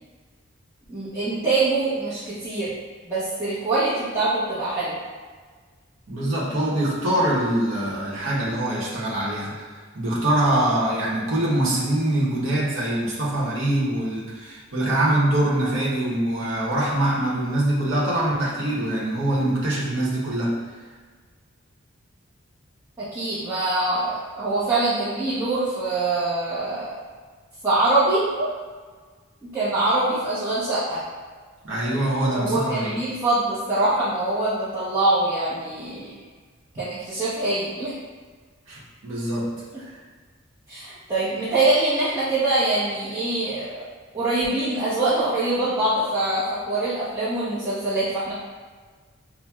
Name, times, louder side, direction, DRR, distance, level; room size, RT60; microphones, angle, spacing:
voice 1, 0.9-2.7 3.1-5.0 23.0-26.9 27.6-28.5 29.4-31.0 32.3-36.2 36.8-37.9 40.7-43.7 44.1-48.3, right 2 dB, 15° right, -14 dB, 0.8 m, -24 dB
voice 2, 6.1-9.7 9.9-20.5 31.6-33.0 38.7-39.5 39.8-39.9, right 1 dB, 75° right, -6 dB, 0.9 m, -24 dB
5.6 x 2.1 x 2.3 m, 1.5 s
head